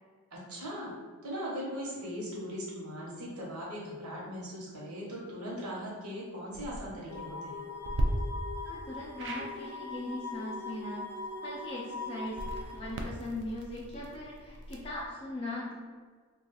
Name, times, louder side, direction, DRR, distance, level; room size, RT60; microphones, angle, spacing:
voice 1, 0.3-0.9 1.2-7.6, equal, 80° right, -5 dB, 1.0 m, -39 dB
sound 1, 6.5-6.8 7.8-8.1 9.2-9.5 12.2-15.1, right 1 dB, 50° right, 0.3 m, -37 dB
sound 2, 7.1-12.7, left 3 dB, 90° left, 0.6 m, -41 dB
voice 2, 8.6-11.0 11.4-15.7, left 1 dB, 25° left, -6 dB, 0.4 m, -40 dB
2.4 x 2.3 x 3.9 m, 1.5 s
head